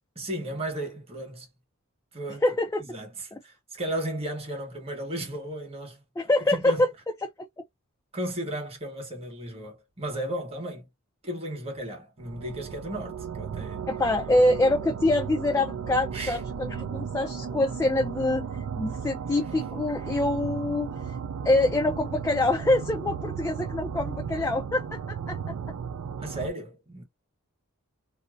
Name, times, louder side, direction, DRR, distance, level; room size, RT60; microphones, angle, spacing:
voice 1, 0.1-1.5 2.1-2.4 2.8-6.0 6.5-6.9 8.1-10.9 11.2-13.8 16.1-16.4 19.3-19.4 26.2-27.0, right 1 dB, 30° right, 1.1 m, -35 dB
voice 2, 2.4-2.8 3.3-3.4 6.2-6.9 7.2-7.3 13.9-18.5 18.8-20.9 21.4-25.4, left 2 dB, 15° left, 0.3 m, -25 dB
sound 1, 12.2-26.5, right 6 dB, 65° right, 0.3 m, -35 dB
2.6 x 2.0 x 2.3 m
head